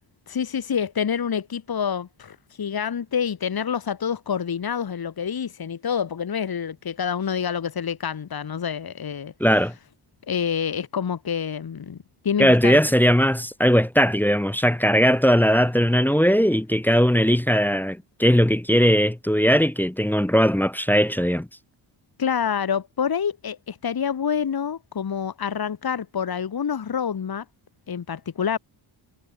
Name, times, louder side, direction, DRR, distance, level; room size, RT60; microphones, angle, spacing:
voice 1, 0.3-9.3 10.3-12.0 12.2-12.8 22.2-27.5 27.9-28.6, left 7 dB, 50° left, 1.8 m, -27 dB
voice 2, 9.4-9.7 12.4-21.5, equal, 5° left, 0.4 m, -19 dB
wide cardioid pair, 125°, 48 cm